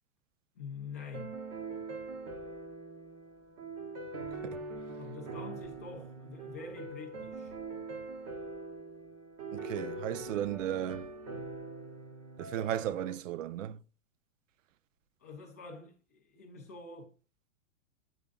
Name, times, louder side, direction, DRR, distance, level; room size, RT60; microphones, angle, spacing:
voice 1, 0.5-1.5 5.0-7.5 15.2-17.1, left 4 dB, 15° left, 0.4 m, -46 dB
sound 1, 1.1-13.1, right 3 dB, 25° right, 0.8 m, -43 dB
voice 2, 9.5-11.1 12.4-13.8, right 11 dB, 85° right, 0.6 m, -35 dB
8.6 x 7.0 x 2.3 m
supercardioid pair, 175°, 37 cm